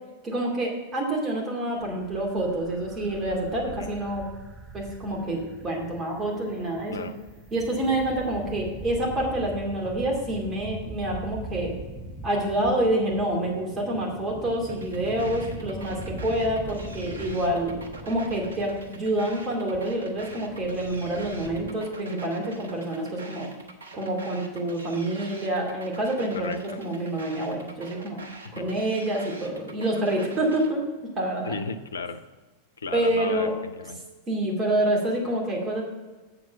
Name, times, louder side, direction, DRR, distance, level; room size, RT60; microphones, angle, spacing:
voice 1, 0.2-4.2 4.7-7.1 7.5-11.7 12.2-17.7 18.0-23.5 23.9-28.2 28.5-30.8 31.2-31.6 32.9-33.5 34.3-35.8, right 1 dB, 25° right, -1 dB, 2.5 m, -27 dB
sound 1, 1.8-21.7, right 1 dB, 10° right, 1.0 m, -42 dB
sound 2, 14.7-30.7, right 2 dB, 70° right, 1.0 m, -45 dB
voice 2, 15.3-15.6 26.3-26.6 28.4-28.8 31.5-32.2 32.8-34.0, left 4 dB, 70° left, 10 dB, 0.6 m, -35 dB
7.7 x 7.0 x 5.2 m, 1.3 s
figure-of-eight pair, 90°, 0 cm